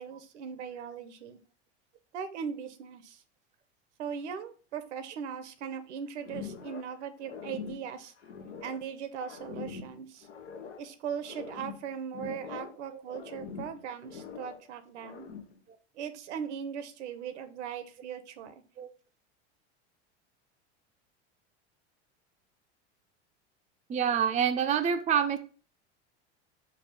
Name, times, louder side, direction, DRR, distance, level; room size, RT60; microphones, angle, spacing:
voice 1, 0.0-1.4 2.1-3.2 4.0-8.1 8.6-10.3 10.8-15.3 15.9-18.6, right 7 dB, 80° right, 10 dB, 0.7 m, -39 dB
sound 1, 6.2-7.0 7.2-8.9 9.2-10.9 11.2-12.8 13.1-14.6 15.0-15.6, left 6 dB, 85° left, 0.7 m, -43 dB
voice 2, 23.9-25.4, right 8 dB, 20° right, 7 dB, 0.4 m, -27 dB
4.8 x 2.3 x 4.8 m, 0.39 s
hypercardioid pair, 85°, 34 cm